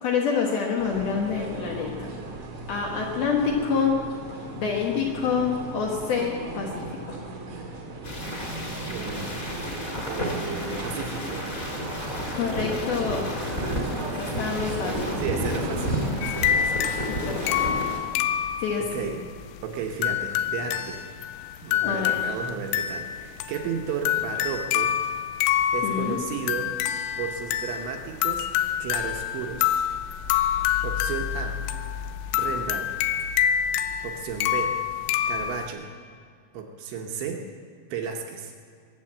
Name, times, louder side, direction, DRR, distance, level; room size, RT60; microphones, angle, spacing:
voice 1, 0.0-2.1 2.7-4.0 4.6-7.2 12.3-13.5 14.2-15.2 17.0-17.8 18.6-19.1 21.8-22.2 25.8-26.2, left 6 dB, 65° left, -1 dB, 2.5 m, -27 dB
sound 1, 0.8-16.1, right 2 dB, 55° right, 1.5 m, -37 dB
sound 2, 8.0-18.0, equal, 25° left, 1.8 m, -31 dB
voice 2, 8.9-9.5 10.1-11.5 13.3-14.1 15.2-17.3 18.9-19.2 19.6-21.0 21.6-24.9 25.7-26.7 27.2-28.5 28.8-29.8 30.8-31.6 32.3-32.9 34.0-34.7 35.3-35.9 36.5-37.4 37.9-38.5, right 6 dB, 75° right, 2 dB, 3.0 m, -34 dB
sound 3, 16.2-35.7, left 10 dB, 85° left, 2.7 m, -27 dB
22.0 x 8.3 x 7.5 m, 2.3 s
omnidirectional pair, 5.8 m